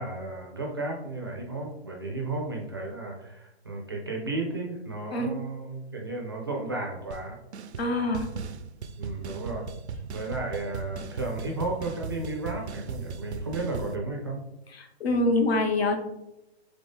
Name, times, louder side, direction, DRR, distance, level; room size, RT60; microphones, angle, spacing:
voice 1, 0.0-7.4 9.0-9.6 10.1-14.4, right 2 dB, 25° right, 0 dB, 0.4 m, -33 dB
sound 1, 7.1-7.2 7.5-7.9 8.1-14.0, right 5 dB, 90° right, 0.5 m, -37 dB
voice 2, 7.8-8.3 14.7-15.9, left 2 dB, 70° left, 4 dB, 1.1 m, -25 dB
4.0 x 3.5 x 3.5 m, 0.91 s
hypercardioid pair, 160°, 32 cm